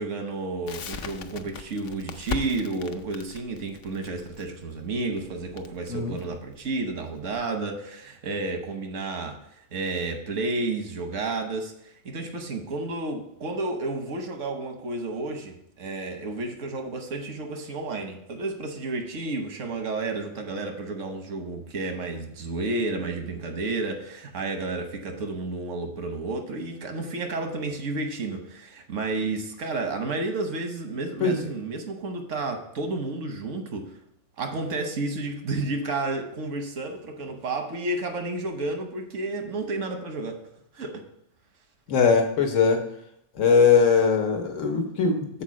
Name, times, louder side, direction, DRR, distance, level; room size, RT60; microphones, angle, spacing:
voice 1, 0.0-9.4 9.7-11.7 12.0-33.9 34.4-40.4 40.7-41.0, right 2 dB, 90° right, 5 dB, 1.3 m, -31 dB
Crackle, 0.7-7.5, left 5 dB, 60° left, 0.7 m, -38 dB
voice 2, 41.9-42.8 43.3-45.4, left 5 dB, 85° left, 4 dB, 1.3 m, -21 dB
6.7 x 4.4 x 6.2 m, 0.75 s
omnidirectional pair, 1.2 m